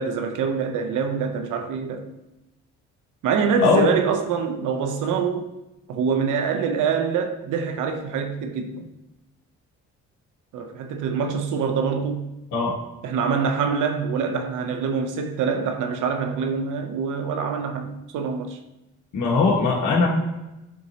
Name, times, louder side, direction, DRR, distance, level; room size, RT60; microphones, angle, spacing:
voice 1, 0.0-2.1 3.2-5.5 5.9-8.9 10.5-12.3 13.0-18.6, right 6 dB, 85° right, 0.8 m, -25 dB
voice 2, 19.1-20.1, left 4 dB, 75° left, 1.5 m, -19 dB
10.5 x 4.1 x 2.8 m
cardioid pair, 90°, 30 cm